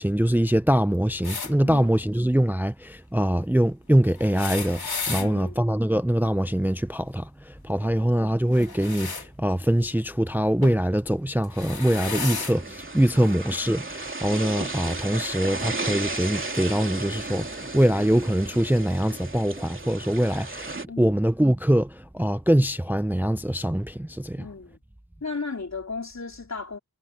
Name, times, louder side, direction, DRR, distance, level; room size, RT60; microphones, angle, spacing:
voice 1, 0.0-4.8 5.1-24.4, right 1 dB, 5° right, 0.5 m, -23 dB
sound 1, 1.2-1.5 4.1-5.3 8.5-9.3 10.6-10.8 11.4-12.6 13.6-13.7 14.9-15.0, left 5 dB, 70° left, 3.9 m, -33 dB
voice 2, 5.2-5.6 12.2-12.5 13.1-13.4 20.9-21.2 24.4-24.8 25.2-26.8, left 4 dB, 45° left, 3.6 m, -36 dB
sound 2, 11.9-20.8, right 2 dB, 30° right, 3.1 m, -34 dB
wide cardioid pair, 100°, 39 cm